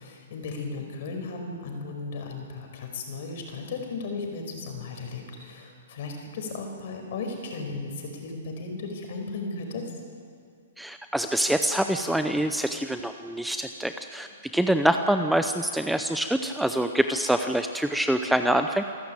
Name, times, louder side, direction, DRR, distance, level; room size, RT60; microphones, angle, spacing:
voice 1, 0.0-9.9, left 3 dB, 50° left, 3 dB, 5.1 m, -35 dB
voice 2, 10.8-14.3 14.5-18.8, right 1 dB, ahead, 7 dB, 0.6 m, -25 dB
27.0 x 12.0 x 8.9 m, 2.2 s
hypercardioid pair, 160°, 0 cm